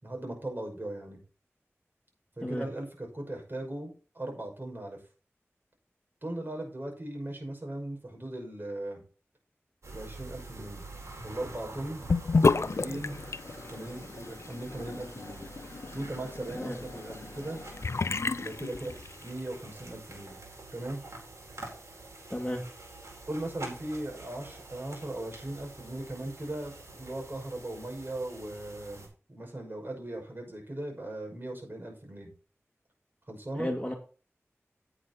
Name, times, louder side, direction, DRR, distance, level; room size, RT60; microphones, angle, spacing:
voice 1, 0.0-1.2 2.4-5.0 6.2-9.0 9.9-10.8 11.2-12.0 12.3-13.1 13.7-15.5 15.9-17.6 18.4-20.4 20.7-21.0 23.3-32.3 33.3-33.7, right 1 dB, 45° right, 2 dB, 5.9 m, -38 dB
sound 1, 9.8-29.1, right 2 dB, 85° right, 4.3 m, -47 dB
Sink (filling or washing) / Bathtub (filling or washing), 12.1-19.4, left 4 dB, 65° left, 0.4 m, -31 dB
voice 2, 22.3-22.6 33.6-33.9, left 1 dB, 15° left, -1 dB, 2.2 m, -33 dB
9.5 x 8.9 x 4.2 m, 0.36 s
wide cardioid pair, 45°, 5 cm